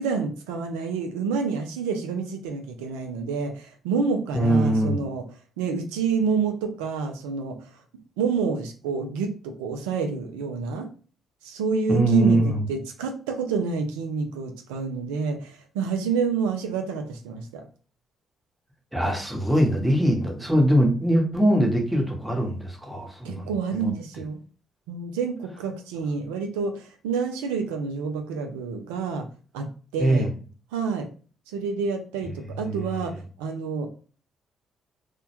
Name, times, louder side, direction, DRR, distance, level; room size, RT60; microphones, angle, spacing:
voice 1, 0.0-5.2 5.6-7.7 8.2-10.9 11.4-17.6 23.2-24.4 24.9-29.3 29.5-30.3 30.7-31.1 31.5-33.9, right 5 dB, 85° right, 4 dB, 0.3 m, -28 dB
voice 2, 4.3-5.0 11.9-12.6 18.9-23.9 30.0-30.3 32.6-32.8, right 1 dB, 5° right, 1 dB, 0.9 m, -22 dB
2.1 x 2.1 x 2.8 m, 0.39 s
hypercardioid pair, 50°, 0 cm